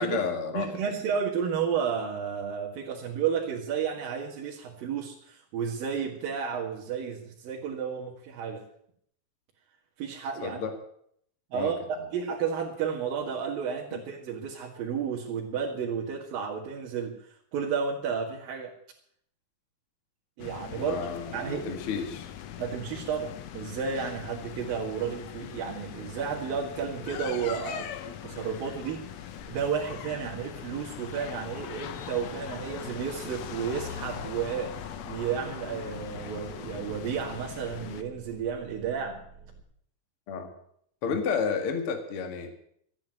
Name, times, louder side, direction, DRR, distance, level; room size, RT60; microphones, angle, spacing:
voice 1, 0.0-0.7 10.4-10.7 11.5-11.7 13.9-14.0 20.7-22.3 40.3-40.5 41.0-42.5, left 6 dB, 45° left, 6 dB, 2.3 m, -31 dB
voice 2, 0.5-8.6 10.0-10.6 11.5-11.8 12.1-17.1 17.5-18.7 20.4-21.1 21.3-21.7 22.6-29.0 29.5-34.7 35.1-39.2 41.1-41.2, right 7 dB, 70° right, -5 dB, 3.9 m, -32 dB
sound 1, 20.4-38.0, left 10 dB, 80° left, 1.5 m, -41 dB
sound 2, 29.4-39.6, right 3 dB, 55° right, 3.3 m, -52 dB
13.5 x 9.7 x 9.2 m, 0.67 s
omnidirectional pair, 4.3 m